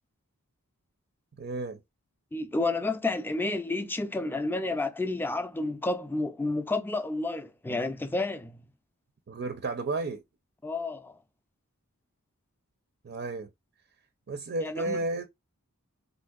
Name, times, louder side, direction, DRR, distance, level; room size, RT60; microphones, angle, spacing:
voice 1, 1.4-1.8 9.3-10.2 13.0-13.5 14.3-15.3, right 2 dB, 45° right, 0.5 m, -32 dB
voice 2, 2.3-8.6 10.6-11.1 14.6-15.0, left 2 dB, 10° left, 0.4 m, -30 dB
4.0 x 2.6 x 2.3 m
head